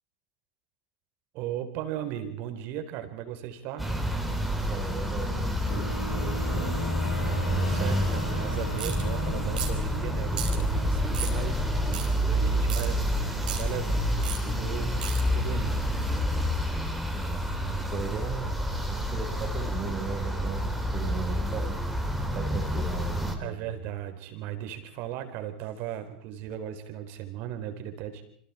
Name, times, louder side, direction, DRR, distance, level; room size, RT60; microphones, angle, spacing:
voice 1, 1.3-3.9 7.3-15.0 15.3-15.9 23.4-28.2, right 11 dB, 45° right, 7 dB, 4.1 m, -37 dB
sound 1, 3.8-23.4, equal, ahead, 3.5 m, -28 dB
voice 2, 4.7-6.7 17.1-21.8 22.3-23.7, right 6 dB, 25° right, -3 dB, 4.8 m, -37 dB
Wind instrument woodwind instrument, 5.7-9.8, left 1 dB, 75° left, 3.7 m, -40 dB
sound 2, 8.8-9.0 9.5-9.8 10.3-10.6 11.1-11.4 11.9-12.1 12.7-12.9 13.4-13.6 14.2-14.4 15.0-15.2, right 8 dB, 65° right, 4.9 m, -34 dB
28.5 x 27.0 x 4.5 m, 0.64 s
figure-of-eight pair, 90°, 5 cm